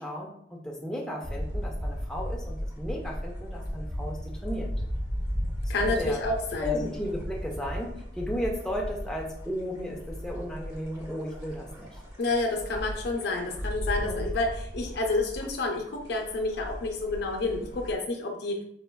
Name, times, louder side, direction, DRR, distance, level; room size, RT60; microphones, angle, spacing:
voice 1, 0.0-4.7 5.8-6.2 6.6-11.9 14.0-14.2, equal, 5° left, -2 dB, 0.4 m, -34 dB
sound 1, 1.2-17.9, equal, 25° right, 1.2 m, -36 dB
voice 2, 5.7-6.8 12.2-18.6, left 2 dB, 65° left, 2 dB, 0.5 m, -29 dB
4.1 x 2.2 x 2.2 m, 0.70 s
head